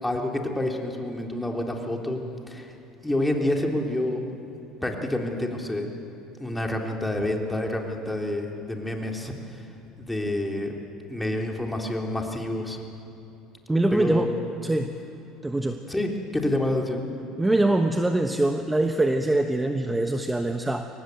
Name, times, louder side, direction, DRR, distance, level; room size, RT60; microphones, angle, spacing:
voice 1, 0.0-2.2 2.5-2.7 3.0-4.2 4.8-5.9 6.4-9.7 10.0-10.8 11.1-12.8 13.9-14.3 15.9-17.0, left 1 dB, 10° left, 1 dB, 3.5 m, -28 dB
voice 2, 13.7-14.3 14.6-15.0 15.4-15.8 17.4-20.8, right 2 dB, 10° right, 6 dB, 1.1 m, -23 dB
23.5 x 18.5 x 7.9 m, 2.9 s
hypercardioid pair, 75°, 0 cm